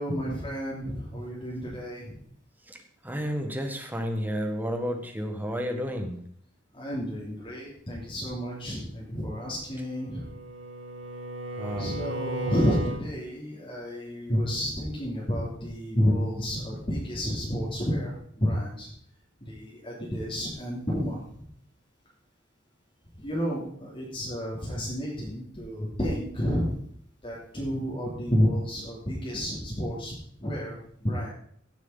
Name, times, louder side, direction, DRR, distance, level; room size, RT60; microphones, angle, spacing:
voice 1, 0.0-2.2 6.7-10.2 11.7-18.1 18.4-18.9 19.5-21.2 23.2-26.7 27.2-30.1 30.4-30.8 31.0-31.3, equal, 30° left, -5 dB, 3.1 m, -30 dB
voice 2, 3.0-6.2 11.6-12.0, equal, 10° right, 4 dB, 1.5 m, -31 dB
Bowed string instrument, 9.7-13.1, right 1 dB, 85° right, 2.3 m, -35 dB
16.5 x 7.7 x 4.0 m, 0.64 s
head